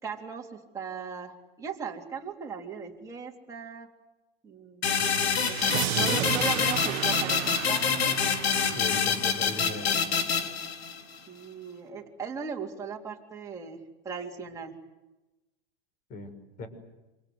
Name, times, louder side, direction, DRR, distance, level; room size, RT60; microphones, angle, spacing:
voice 1, 0.0-3.9 4.4-4.9 5.4-5.6 5.9-8.2 11.3-14.8, right 6 dB, 10° right, -1 dB, 3.5 m, -38 dB
sound 1, 4.8-11.2, left 6 dB, 90° left, 3.9 m, -26 dB
sound 2, 5.3-10.3, right 16 dB, 40° right, 1.2 m, -34 dB
voice 2, 8.7-10.2 16.1-16.7, left 3 dB, 25° left, 9 dB, 5.7 m, -39 dB
27.5 x 26.0 x 7.9 m, 1.0 s
supercardioid pair, 155°, 31 cm